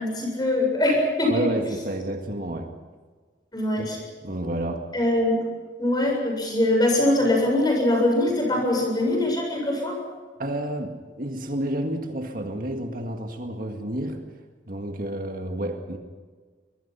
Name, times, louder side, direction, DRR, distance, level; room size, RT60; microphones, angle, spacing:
voice 1, 0.0-1.4 3.5-4.0 4.9-5.4 5.8-10.0, left 1 dB, 20° left, 0 dB, 7.7 m, -22 dB
voice 2, 1.3-2.7 3.8-3.9 4.2-4.9 10.4-14.2 14.7-16.0, right 1 dB, 50° right, 4 dB, 2.0 m, -30 dB
25.0 x 21.5 x 5.8 m, 1.5 s
head